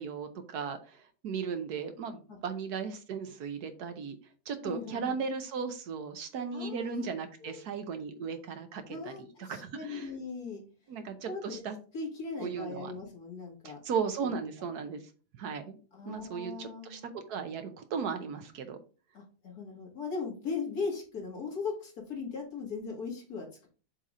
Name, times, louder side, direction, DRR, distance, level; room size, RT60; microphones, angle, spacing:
voice 1, 0.0-4.2 4.5-10.1 10.9-11.8 12.4-12.9 13.6-15.0 15.4-15.8 16.0-18.8, right 6 dB, 70° right, 7 dB, 1.3 m, -36 dB
voice 2, 4.6-5.2 6.5-7.0 7.4-7.6 8.9-10.6 11.3-11.6 11.9-13.8 14.2-14.4 15.9-17.1 19.1-23.7, left 4 dB, 65° left, -1 dB, 2.5 m, -38 dB
7.4 x 2.9 x 4.9 m, 0.38 s
omnidirectional pair, 1.8 m